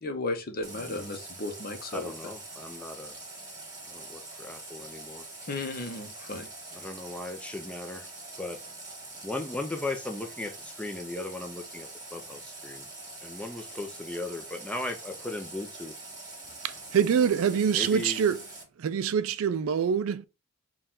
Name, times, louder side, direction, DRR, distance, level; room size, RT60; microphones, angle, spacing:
voice 1, 0.0-2.1 5.4-6.5, left 2 dB, 40° left, 0.7 m, -34 dB
Water tap faucet, 0.6-18.6, right 2 dB, 15° right, 1.6 m, -44 dB
voice 2, 1.9-3.2 3.9-5.2 6.7-8.1 8.4-8.6 9.2-12.9 13.2-15.9 17.7-18.3, left 2 dB, 5° left, 0.5 m, -37 dB
voice 3, 16.6-18.4 18.8-20.3, right 7 dB, 65° right, 0.3 m, -25 dB
4.4 x 2.4 x 3.7 m
head